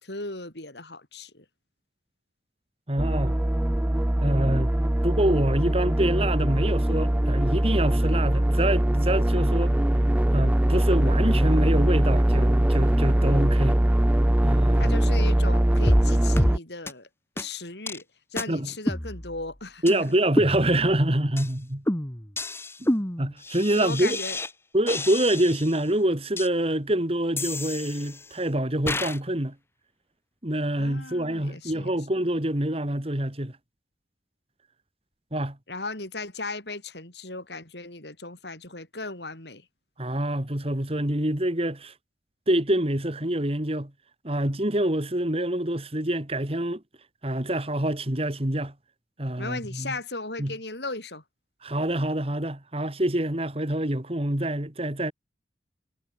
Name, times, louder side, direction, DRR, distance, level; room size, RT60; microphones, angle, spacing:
voice 1, 0.0-1.5 14.8-17.1 17.4-18.0 18.3-20.1 23.8-24.4 30.8-32.0 35.7-39.7 49.4-51.2, left 3 dB, 70° left, 7.1 m, -36 dB
voice 2, 2.9-3.4 4.2-4.7 5.0-9.7 10.3-13.8 14.4-14.9 18.5-18.7 19.8-21.8 22.8-22.9 23.2-24.2 24.7-29.5 30.4-33.5 35.3-35.6 40.0-41.9 42.5-43.9 44.2-46.8 47.2-48.7 49.2-49.9 50.4-50.5 51.6-55.1, right 1 dB, 35° right, 2.4 m, -26 dB
sound 1, 3.0-16.6, right 1 dB, 10° right, 0.3 m, -22 dB
sound 2, 15.9-16.1 16.4-16.6 16.9-17.0 17.4-17.5 17.9-18.0 18.4-18.5 18.9-19.5 19.9-20.0 20.4-21.0 21.4-21.5 21.9-24.5 24.9-25.8 26.4-26.5 27.4-28.3 28.9-29.2, left 1 dB, 15° left, 1.5 m, -29 dB
head